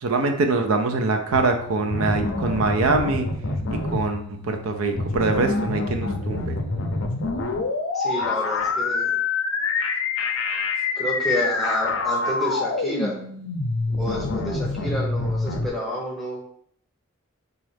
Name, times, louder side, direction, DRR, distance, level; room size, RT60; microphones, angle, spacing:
voice 1, 0.0-3.3 3.9-6.6, right 3 dB, 85° right, 6 dB, 0.5 m, -23 dB
sound 1, 1.3-15.7, left 3 dB, 70° left, 0.5 m, -26 dB
voice 2, 7.9-9.2 11.0-13.2 14.0-16.4, equal, ahead, -4 dB, 0.8 m, -29 dB
4.0 x 2.4 x 3.2 m, 0.65 s
head